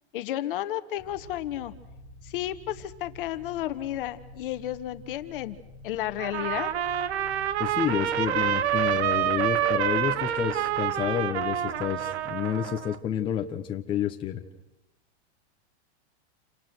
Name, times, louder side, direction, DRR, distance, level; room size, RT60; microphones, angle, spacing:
voice 1, 0.1-1.7 2.2-5.6 5.8-6.7, left 13 dB, 50° left, 11 dB, 1.5 m, -32 dB
sound 1, 1.0-14.0, left 2 dB, 25° right, 7.9 m, -49 dB
Trumpet, 6.2-13.0, right 11 dB, 75° right, 1.4 m, -27 dB
voice 2, 7.6-14.4, left 9 dB, 15° left, 3 dB, 1.1 m, -29 dB
29.0 x 26.0 x 6.2 m, 0.95 s
supercardioid pair, 165°, 33 cm